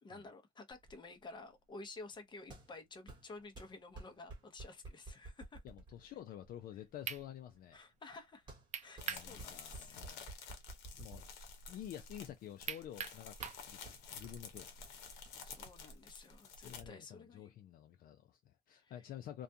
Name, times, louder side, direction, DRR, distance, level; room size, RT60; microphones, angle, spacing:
voice 1, 0.0-5.6 7.7-8.5 8.8-10.0 15.1-17.5 18.8-18.9, left 3 dB, 25° left, 0.7 m, -52 dB
sound 1, 0.7-16.9, right 2 dB, 30° right, 1.0 m, -55 dB
voice 2, 5.6-7.8 9.1-10.3 11.0-14.9 16.6-19.4, left 11 dB, 60° left, 0.4 m, -50 dB
sound 2, 6.6-6.7 7.1-7.2 8.7-9.3 9.7-9.8 12.7-13.6, right 8 dB, 45° right, 0.5 m, -41 dB
sound 3, 9.0-16.8, left 5 dB, 90° left, 0.8 m, -51 dB
2.3 x 2.3 x 2.6 m
cardioid pair, 110°, 17 cm